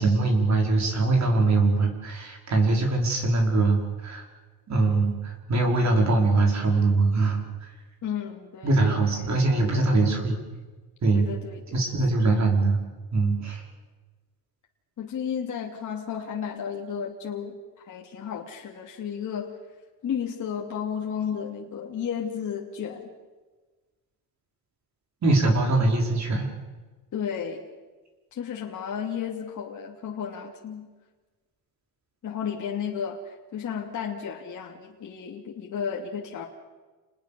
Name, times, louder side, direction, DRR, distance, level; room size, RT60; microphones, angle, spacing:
voice 1, 0.0-4.2 4.7-7.7 8.6-10.4 11.0-11.2 11.7-12.8 13.1-13.6 25.2-26.5, right 3 dB, 40° right, 1 dB, 5.3 m, -22 dB
voice 2, 8.0-9.3 9.7-10.2 11.1-11.8 15.0-17.6 17.8-19.6 20.0-23.1 27.1-27.7 28.3-30.9 32.2-36.4, left 7 dB, 45° left, -1 dB, 2.9 m, -33 dB
28.5 x 20.0 x 7.0 m, 1.3 s
cardioid pair, 115°, 41 cm